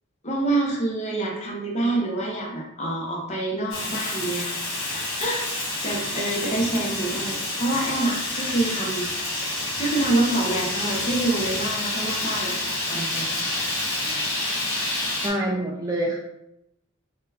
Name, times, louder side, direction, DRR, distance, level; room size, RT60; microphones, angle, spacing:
voice 1, 0.2-4.6 4.8-5.4 5.8-9.1 9.4-9.5 9.8-13.5, right 2 dB, 35° left, -2 dB, 0.8 m, -27 dB
Fire, 3.7-15.3, left 2 dB, 70° left, 1.0 m, -28 dB
voice 2, 15.2-16.2, right 1 dB, 15° right, -2 dB, 0.3 m, -27 dB
3.8 x 2.4 x 2.7 m, 0.85 s
head